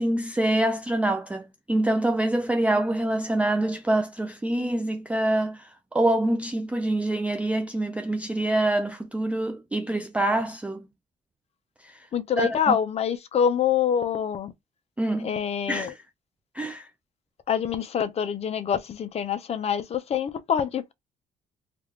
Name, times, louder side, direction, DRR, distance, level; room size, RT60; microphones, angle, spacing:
voice 1, 0.0-10.8 11.8-12.1 12.4-12.8 15.0-15.3 15.7-15.9 16.5-16.9, right 1 dB, 10° right, 0.3 m, -25 dB
voice 2, 12.1-14.5 15.2-15.9 17.5-20.9, left 8 dB, 40° left, 0.6 m, -26 dB
3.4 x 2.4 x 3.1 m
cardioid pair, 110°, 17 cm